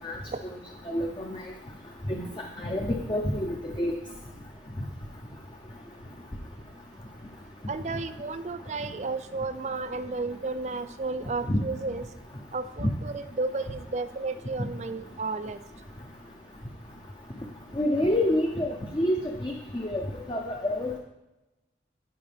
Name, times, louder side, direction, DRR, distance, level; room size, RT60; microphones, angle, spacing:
voice 1, 0.9-1.4 2.1-2.2 2.6-3.9 11.5-11.6 12.8-12.9 17.8-19.1 19.4-20.0 20.3-21.0, left 1 dB, 25° left, 0 dB, 0.7 m, -27 dB
voice 2, 7.7-12.0 12.5-15.6, right 3 dB, 40° right, 12 dB, 0.4 m, -33 dB
14.5 x 5.0 x 3.4 m, 0.99 s
head